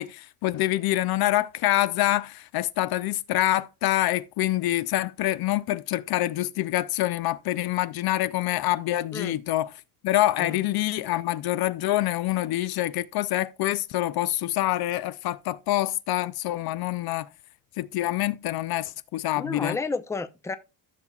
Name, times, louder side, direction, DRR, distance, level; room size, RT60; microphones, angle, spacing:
voice 1, 0.0-9.7 10.0-17.3 17.8-19.8, left 15 dB, 60° left, 0.6 m, -26 dB
voice 2, 19.4-20.6, left 4 dB, 5° left, 0.6 m, -31 dB
14.5 x 5.8 x 2.3 m
supercardioid pair, 90°, 43 cm